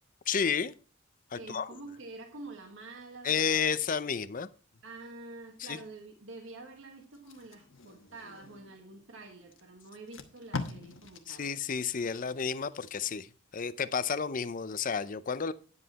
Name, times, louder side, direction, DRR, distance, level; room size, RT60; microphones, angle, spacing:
voice 1, 0.3-0.7 1.3-1.7 3.2-4.5 5.6-5.8 11.3-13.3 13.5-15.5, left 6 dB, 40° left, 0.5 m, -31 dB
voice 2, 1.3-3.5 4.8-11.5, right 2 dB, 70° right, 1.4 m, -47 dB
Packing tape duct tape, 7.1-8.8 9.5-9.6 9.9-12.9 13.3-13.6, left 3 dB, 75° left, 1.2 m, -43 dB
9.7 x 7.8 x 4.1 m
head